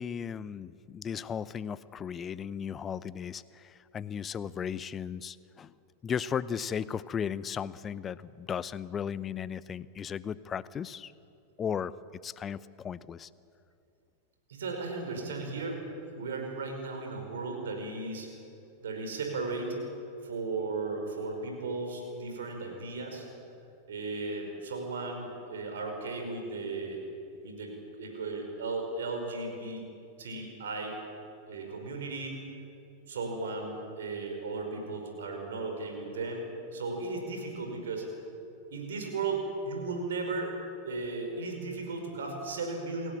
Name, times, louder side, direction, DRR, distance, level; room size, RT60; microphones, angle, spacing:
voice 1, 0.0-5.7 6.0-11.1 11.6-11.9 12.2-13.3, left 7 dB, 25° left, 19 dB, 0.7 m, -36 dB
voice 2, 14.5-18.3 18.8-19.8 20.2-23.3 23.9-27.0 27.4-29.8 30.2-30.9 31.5-32.5 33.1-36.4 36.7-38.1 38.7-40.6 40.8-43.2, right 3 dB, 65° right, 3 dB, 5.3 m, -36 dB
28.0 x 16.5 x 8.7 m, 2.7 s
figure-of-eight pair, 90°, 0 cm